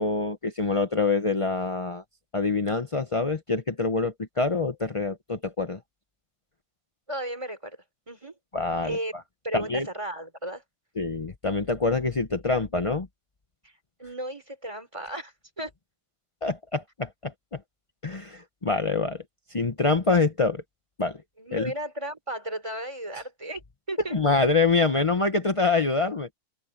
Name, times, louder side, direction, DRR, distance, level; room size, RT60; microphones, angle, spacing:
voice 1, 0.0-2.0 2.3-5.8 8.5-9.0 9.5-9.9 11.0-13.1 16.4-17.6 18.0-19.2 19.5-20.6 21.0-21.2 21.5-21.7 24.1-26.3, left 3 dB, 40° left, 0.4 m, -25 dB
voice 2, 7.1-7.8 8.1-8.4 8.8-9.1 9.4-10.6 13.6-13.7 14.0-15.7 21.4-24.4, right 1 dB, 15° right, 3.5 m, -35 dB
open air
omnidirectional pair, 2.1 m